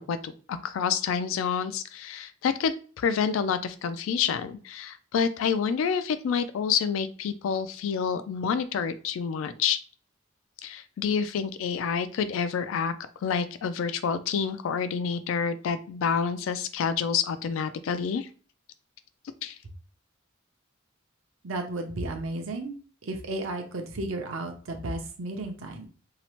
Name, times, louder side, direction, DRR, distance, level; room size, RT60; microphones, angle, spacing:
voice 1, 0.0-9.8 10.6-18.3 19.4-19.6, left 6 dB, 70° left, 12 dB, 0.3 m, -28 dB
voice 2, 21.4-22.8 23.0-25.9, right 2 dB, 75° right, 4 dB, 0.6 m, -33 dB
2.8 x 2.0 x 2.9 m, 0.40 s
head